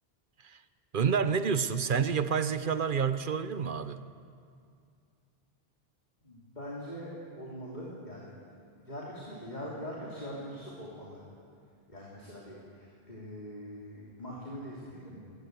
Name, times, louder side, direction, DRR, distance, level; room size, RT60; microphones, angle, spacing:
voice 1, 0.9-4.0, right 6 dB, 55° right, 12 dB, 1.0 m, -28 dB
voice 2, 6.2-8.3 8.8-11.2 11.9-15.2, equal, 45° left, -5 dB, 3.5 m, -42 dB
26.0 x 14.5 x 8.2 m, 2.3 s
omnidirectional pair, 1.1 m